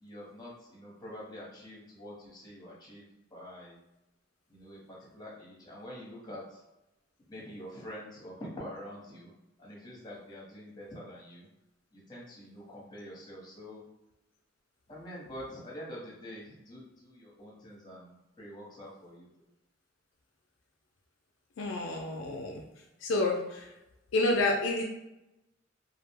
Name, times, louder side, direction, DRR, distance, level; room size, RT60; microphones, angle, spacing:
voice 1, 0.0-3.0 3.3-3.8 4.5-6.4 7.3-9.3 9.6-11.5 11.9-13.8 14.9-19.3, equal, 20° left, -4 dB, 0.8 m, -46 dB
voice 2, 21.6-22.6 23.0-23.7 24.1-24.8, left 2 dB, 70° left, 1 dB, 0.4 m, -29 dB
2.3 x 2.0 x 3.4 m, 0.91 s
head